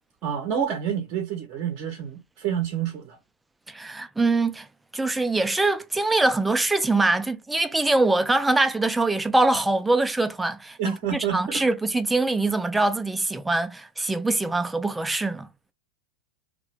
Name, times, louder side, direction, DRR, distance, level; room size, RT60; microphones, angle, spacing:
voice 1, 0.2-3.2 10.8-11.6, right 8 dB, 40° right, 0.7 m, -28 dB
voice 2, 3.7-4.7 4.9-15.5, right 2 dB, 5° right, 0.4 m, -23 dB
2.7 x 2.1 x 3.1 m
figure-of-eight pair, 90°, 0 cm